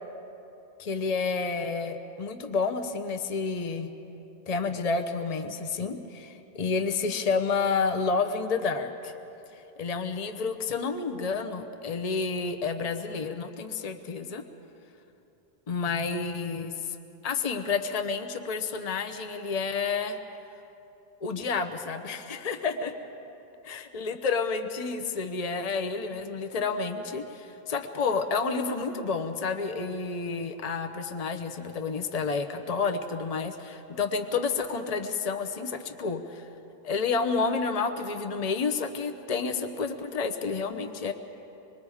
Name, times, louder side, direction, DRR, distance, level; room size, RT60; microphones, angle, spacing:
voice 1, 0.8-3.9 4.5-9.1 9.8-14.4 15.7-16.7 17.2-20.2 21.2-22.9 23.7-36.5 36.8-41.1, left 4 dB, 40° left, 7 dB, 0.9 m, -30 dB
25.5 x 20.5 x 4.9 m, 2.9 s
omnidirectional pair, 1.0 m